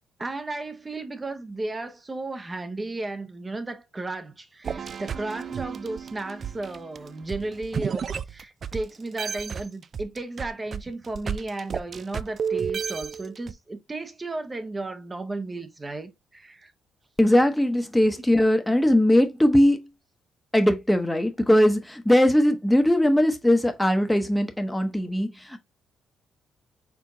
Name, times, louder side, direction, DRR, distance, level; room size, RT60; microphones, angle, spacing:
voice 1, 0.2-16.7, right 2 dB, 25° right, 0.7 m, -34 dB
sound 1, 4.6-8.8 9.2-13.5, right 7 dB, 50° right, 0.3 m, -32 dB
voice 2, 17.2-19.8 20.5-25.6, left 1 dB, 5° left, 0.8 m, -20 dB
4.6 x 3.6 x 2.7 m
cardioid pair, 90°, 0 cm